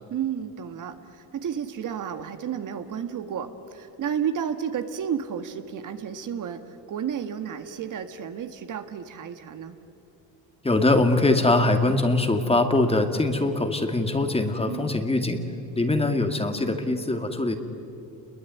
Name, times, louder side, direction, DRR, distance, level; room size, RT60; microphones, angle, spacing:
voice 1, 0.1-9.7 14.7-15.0, right 8 dB, 55° right, 8 dB, 1.7 m, -32 dB
voice 2, 10.6-15.4 15.8-17.6, left 2 dB, 15° left, 6 dB, 2.3 m, -22 dB
29.0 x 22.0 x 9.3 m, 2.8 s
cardioid pair, 105°, 37 cm